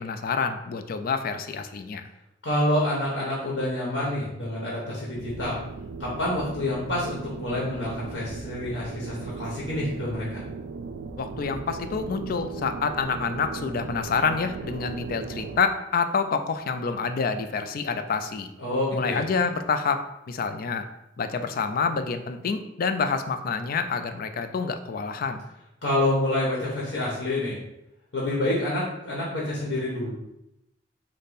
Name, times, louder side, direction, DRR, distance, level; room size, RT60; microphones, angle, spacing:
voice 1, 0.0-2.0 11.2-18.5 18.9-20.9 21.2-25.4, left 5 dB, 50° left, 9 dB, 0.4 m, -27 dB
voice 2, 2.4-5.6 6.0-10.4 18.6-19.2 25.8-27.6 28.1-30.1, left 1 dB, 85° left, -5 dB, 1.2 m, -27 dB
sound 1, 5.1-15.6, right 4 dB, 90° right, 0.4 m, -37 dB
5.2 x 2.2 x 4.0 m, 0.87 s
head